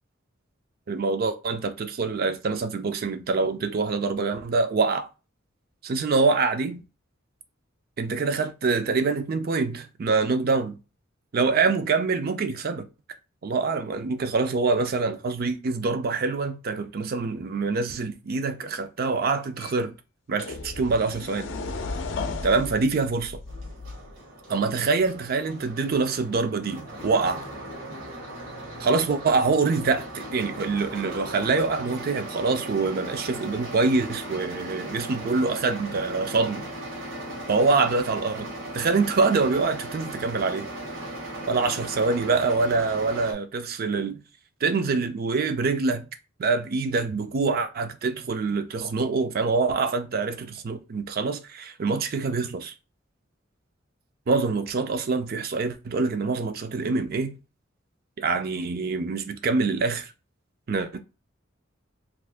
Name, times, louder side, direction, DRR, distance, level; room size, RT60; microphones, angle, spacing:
voice 1, 0.9-5.1 5.8-6.8 8.0-10.8 11.3-12.9 13.4-19.9 20.3-21.5 22.4-23.4 24.5-27.4 28.8-36.7 37.5-38.5 38.7-40.7 41.4-44.2 44.6-46.1 46.4-52.7 54.3-57.3 58.2-60.1 60.7-61.0, right 4 dB, 50° right, 0.4 m, -25 dB
sound 1, 19.6-19.7 20.4-24.2, left 3 dB, 70° left, 0.5 m, -34 dB
votvoti boat, 23.5-43.3, right 1 dB, 75° right, 1.1 m, -38 dB
2.5 x 2.5 x 3.4 m
head